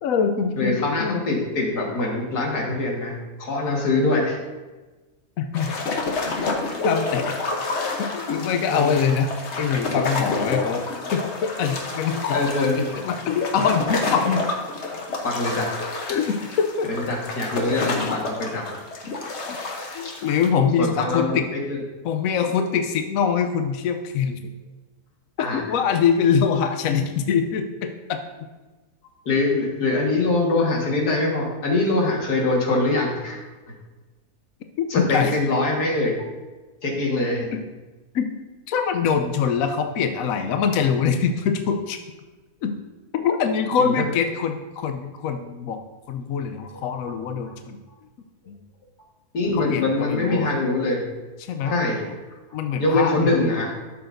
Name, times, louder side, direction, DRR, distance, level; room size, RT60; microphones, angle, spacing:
voice 1, 0.0-1.2 5.4-5.7 6.8-7.3 8.0-9.3 9.6-10.8 11.1-14.4 16.1-16.9 19.5-19.6 19.9-21.5 22.0-24.5 25.5-28.5 34.8-35.3 37.5-37.6 38.1-38.3 38.7-42.0 42.6-42.7 43.1-45.8 46.1-47.8 48.5-48.6 49.5-50.5 51.4-51.8 52.5-53.3, left 6 dB, 70° left, 6 dB, 1.0 m, -24 dB
voice 2, 0.6-4.4 8.7-9.0 12.3-12.9 15.2-15.7 16.9-18.8 20.0-20.2 20.8-21.8 25.4-25.6 29.3-33.4 34.9-36.1 36.8-37.5 43.8-43.9 46.7-46.8 49.3-51.0 51.6-52.0 52.8-53.7, left 2 dB, 85° left, -1 dB, 2.2 m, -23 dB
sound 1, 5.5-20.5, left 3 dB, 50° left, 1.2 m, -29 dB
12.0 x 6.9 x 2.6 m, 1.2 s
omnidirectional pair, 1.6 m